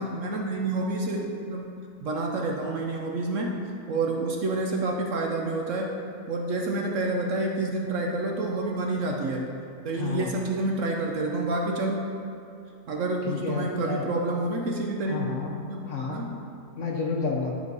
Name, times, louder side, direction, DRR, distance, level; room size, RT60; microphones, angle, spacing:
voice 1, 0.0-1.7 2.0-3.6 3.9-5.9 6.3-9.5 9.8-12.0 12.9-15.2 15.6-16.4, right 2 dB, 60° right, 0 dB, 0.9 m, -28 dB
voice 2, 9.9-10.5 13.2-14.0 15.1-15.5 15.8-16.2 16.7-17.5, left 4 dB, 55° left, 0 dB, 1.0 m, -30 dB
11.0 x 5.0 x 4.1 m, 2.5 s
omnidirectional pair, 1.7 m